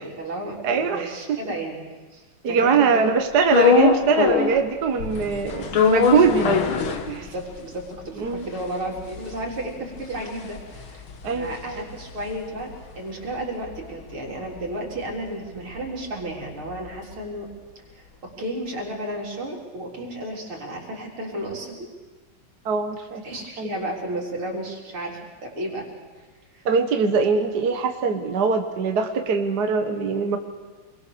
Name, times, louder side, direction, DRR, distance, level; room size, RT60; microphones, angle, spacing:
voice 1, 0.0-1.8 2.1-3.4 7.2-17.5 17.9-21.9 23.2-25.9 26.1-26.2 26.5-26.7, right 1 dB, 85° right, -1 dB, 4.9 m, -33 dB
voice 2, 0.6-1.4 2.4-6.6 7.1-7.3 8.2-8.5 11.2-11.8 22.7-23.2 23.6-23.7 26.7-30.4, right 5 dB, 55° right, 5 dB, 1.8 m, -22 dB
sound 1, 3.5-4.7 5.0-7.6 8.0-8.1 8.2-12.7 13.1-17.1, left 5 dB, 80° left, 2.5 m, -24 dB
27.5 x 22.0 x 6.9 m, 1.3 s
omnidirectional pair, 2.3 m